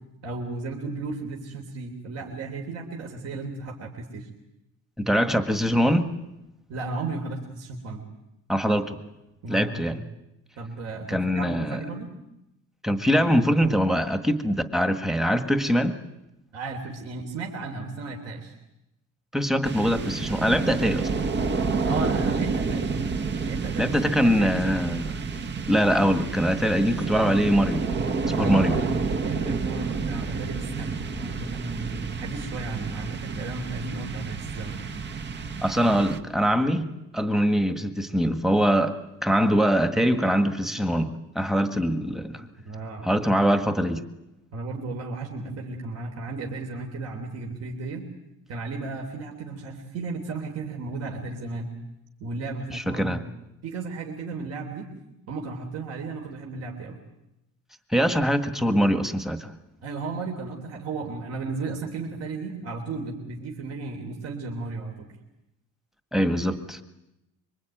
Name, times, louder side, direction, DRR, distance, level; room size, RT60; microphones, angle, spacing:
voice 1, 0.2-4.3 6.7-8.0 9.4-10.0 10.6-12.1 16.5-18.5 21.8-23.2 23.4-25.0 28.4-34.8 42.7-43.1 44.5-48.1 48.5-51.7 52.2-53.2 53.6-54.9 55.3-57.0 59.8-65.1, right 3 dB, 50° right, 1 dB, 3.6 m, -34 dB
voice 2, 5.0-6.1 8.5-9.0 9.5-10.0 11.1-11.8 12.8-15.9 19.3-21.1 23.8-25.1 25.7-27.8 28.4-28.8 35.6-36.9 37.1-42.5 43.0-44.0 52.7-53.2 57.9-59.5 66.1-66.8, equal, ahead, 7 dB, 1.6 m, -23 dB
sound 1, 19.6-36.6, right 4 dB, 35° right, 1.4 m, -29 dB
25.5 x 24.5 x 9.2 m, 0.88 s
cardioid pair, 165°, 32 cm